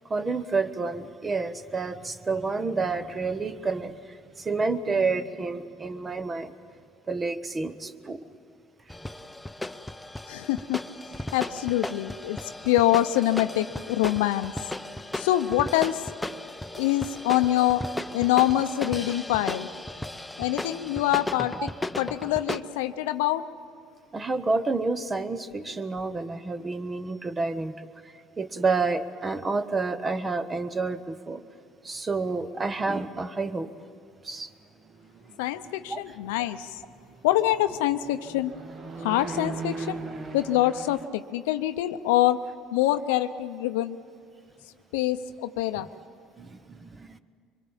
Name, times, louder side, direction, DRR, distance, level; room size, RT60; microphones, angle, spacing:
voice 1, 0.1-6.5 7.1-8.2 24.1-27.9 28.4-31.4 31.8-33.7 34.2-34.5 35.9-36.0 46.4-47.2, right 3 dB, 25° right, 12 dB, 1.1 m, -29 dB
sound 1, 8.9-22.6, left 2 dB, 10° left, 0.8 m, -36 dB
voice 2, 10.3-10.8 11.3-12.4 12.6-14.5 15.1-16.1 16.7-17.8 18.1-19.7 20.4-21.7 22.0-23.4 35.4-36.7 37.2-38.5 39.0-40.0 40.3-42.4 42.7-44.0 44.9-45.9, left 14 dB, 80° left, 11 dB, 0.7 m, -25 dB
sound 2, 34.8-41.1, right 4 dB, 40° right, 1.6 m, -40 dB
24.0 x 23.5 x 7.3 m, 2.2 s
hypercardioid pair, 75°, 0 cm